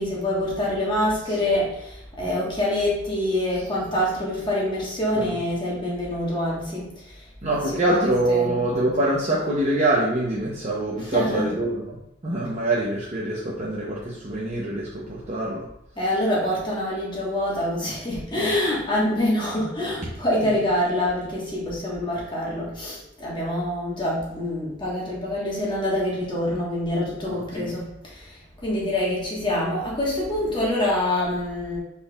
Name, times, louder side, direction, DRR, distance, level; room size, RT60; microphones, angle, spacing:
voice 1, 0.0-7.2 7.5-7.8 8.3-8.6 11.0-11.5 16.0-31.8, left 1 dB, 25° left, -5 dB, 1.2 m, -26 dB
voice 2, 7.4-12.0 12.2-15.6 18.4-18.5 27.3-27.7, right 2 dB, 35° right, -6 dB, 0.7 m, -25 dB
5.4 x 4.3 x 2.3 m, 0.82 s
head